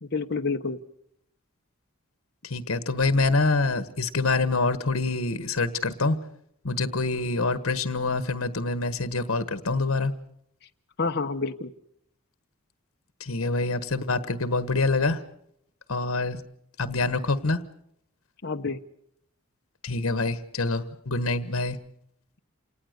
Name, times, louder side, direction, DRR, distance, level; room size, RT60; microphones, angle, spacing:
voice 1, 0.0-0.8 11.0-11.7 18.4-18.8, left 4 dB, 50° left, 5 dB, 1.0 m, -28 dB
voice 2, 2.4-6.2 6.6-10.1 13.2-15.2 15.9-16.4 16.8-17.6 19.8-21.8, left 3 dB, 75° left, 12 dB, 1.4 m, -26 dB
28.0 x 19.0 x 6.7 m, 0.71 s
head